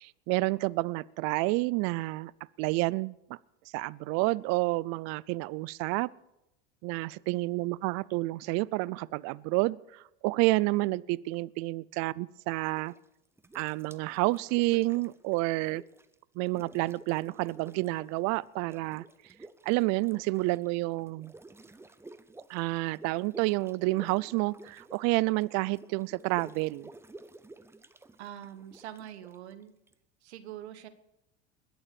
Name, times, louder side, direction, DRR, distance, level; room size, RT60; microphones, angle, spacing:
voice 1, 0.0-2.3 2.6-3.4 3.7-6.1 6.8-12.9 13.5-15.8 16.4-19.0 19.6-21.3 22.5-26.9, right 22 dB, 55° right, 22 dB, 0.5 m, -29 dB
sound 1, 12.6-13.1 13.4-16.1 16.4-18.2 18.4-29.9, right 2 dB, 10° right, 0.7 m, -52 dB
voice 2, 28.2-29.7 30.2-30.9, right 11 dB, 85° right, 12 dB, 1.3 m, -44 dB
21.0 x 7.1 x 6.9 m, 0.87 s
supercardioid pair, 105°, 32 cm